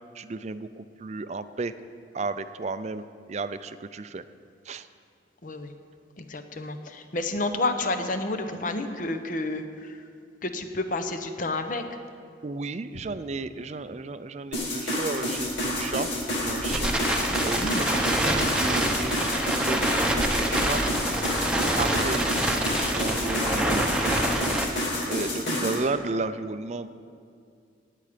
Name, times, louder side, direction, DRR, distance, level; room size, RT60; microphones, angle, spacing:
voice 1, 0.1-1.7 2.1-3.0 3.3-4.2 4.7-4.9 12.4-16.1 16.4-16.9 17.4-20.8 21.5-22.6 22.9-24.5 25.0-26.9, right 3 dB, 35° right, 12 dB, 0.4 m, -33 dB
voice 2, 5.4-5.7 6.2-10.0 10.4-11.9 17.5-17.9 25.5-25.7, left 2 dB, 45° left, 8 dB, 0.8 m, -30 dB
sound 1, 14.5-25.8, left 1 dB, 65° left, 2.5 m, -29 dB
Crackle, 15.4-24.6, right 1 dB, 5° right, 0.9 m, -27 dB
18.0 x 8.5 x 5.0 m, 2.3 s
head